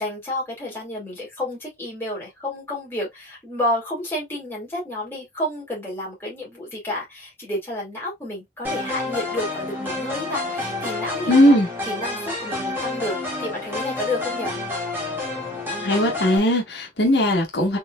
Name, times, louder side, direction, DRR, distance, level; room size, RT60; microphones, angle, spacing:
voice 1, 0.0-11.6 11.9-14.6, left 1 dB, 15° left, 2.5 m, -30 dB
sound 1, 8.6-16.4, left 2 dB, 10° right, 1.7 m, -29 dB
voice 2, 11.3-11.7 15.8-17.8, left 1 dB, 80° left, 1.5 m, -18 dB
4.5 x 3.4 x 2.4 m
head